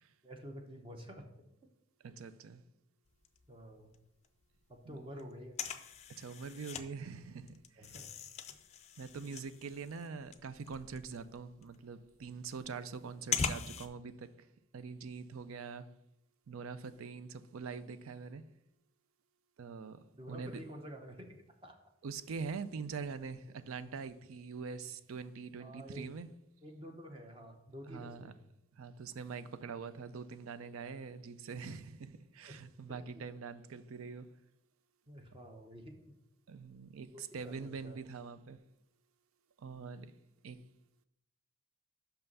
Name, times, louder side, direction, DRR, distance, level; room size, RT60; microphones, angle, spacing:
voice 1, 0.2-1.3 2.1-2.2 3.5-3.9 4.7-5.5 7.8-8.2 8.5-8.6 20.2-21.4 21.6-21.8 25.6-26.1 26.6-28.4 32.5-32.6 32.9-33.0 35.1-36.2 37.1-38.0, equal, 25° right, 0.8 m, -49 dB
voice 2, 2.0-2.6 4.8-5.0 6.1-8.0 9.0-15.9 16.5-18.5 19.6-20.6 22.0-26.3 27.9-28.3 28.7-34.4 36.5-38.7 39.6-40.2 40.4-40.6, right 5 dB, 85° right, 0.4 m, -44 dB
sound 1, 3.1-4.0 4.2-4.3 4.5-6.8 7.2-13.9, left 6 dB, 30° left, 0.4 m, -41 dB
5.8 x 5.6 x 5.4 m
head